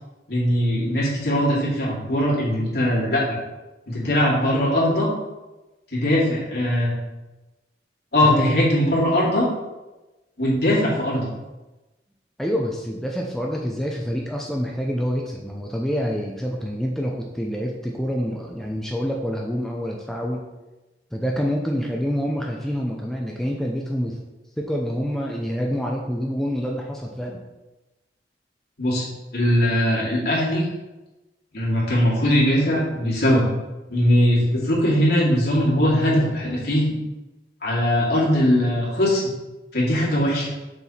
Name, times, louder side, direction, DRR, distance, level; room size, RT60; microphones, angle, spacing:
voice 1, 0.3-3.4 3.9-5.1 5.9-7.0 8.1-9.5 10.4-11.3 28.8-29.1 29.3-30.7 31.5-33.4 33.9-36.9 37.6-39.2 39.7-40.5, equal, 60° left, -6 dB, 2.5 m, -20 dB
voice 2, 12.4-20.4 21.1-24.2 24.6-27.4, equal, ahead, -1 dB, 0.6 m, -27 dB
6.9 x 4.5 x 4.4 m, 1.1 s
head